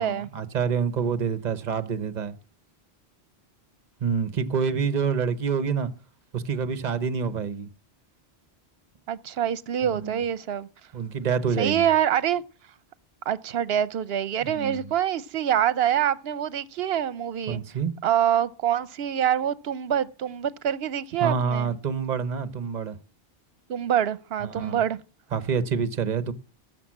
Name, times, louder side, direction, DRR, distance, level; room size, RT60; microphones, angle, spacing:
voice 1, 0.0-2.4 4.0-5.9 6.3-7.7 9.9-10.1 10.9-11.9 14.4-14.9 17.5-17.9 21.2-23.0 24.4-24.8 25.3-26.3, right 6 dB, 45° right, 1.0 m, -27 dB
voice 2, 9.1-10.7 11.6-12.4 13.3-17.6 18.0-21.7 23.7-25.0, right 10 dB, 70° right, 0.9 m, -25 dB
12.5 x 6.9 x 7.3 m
omnidirectional pair, 1.1 m